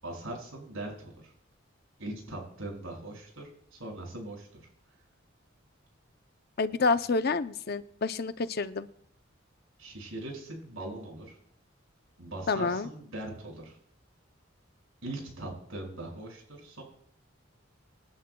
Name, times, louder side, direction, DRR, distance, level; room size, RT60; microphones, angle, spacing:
voice 1, 0.0-0.9 1.2-1.3 2.0-4.6 9.8-11.4 12.2-13.8 15.0-16.8, right 1 dB, 85° right, 1 dB, 6.0 m, -40 dB
voice 2, 6.6-8.9 12.5-12.9, left 4 dB, 50° left, 12 dB, 0.6 m, -28 dB
26.0 x 11.0 x 2.3 m, 0.68 s
head